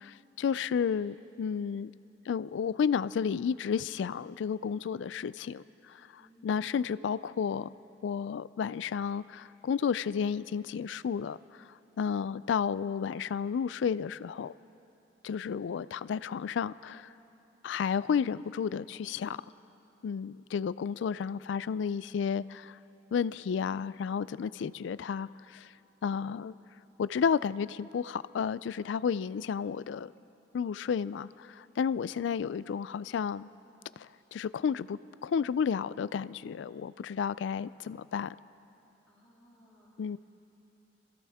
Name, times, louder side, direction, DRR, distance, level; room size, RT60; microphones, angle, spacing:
voice 1, 0.0-1.9 2.3-7.7 8.0-11.4 12.0-14.5 15.2-17.1 17.6-19.4 20.0-22.8 23.1-25.7 26.0-26.5 27.0-30.1 30.5-33.5 34.0-38.4 40.0-40.2, left 7 dB, 75° left, 18 dB, 0.3 m, -32 dB
voice 2, 6.1-6.8 39.1-40.1, equal, 5° left, -10 dB, 2.9 m, -61 dB
25.5 x 15.5 x 3.5 m, 2.8 s
head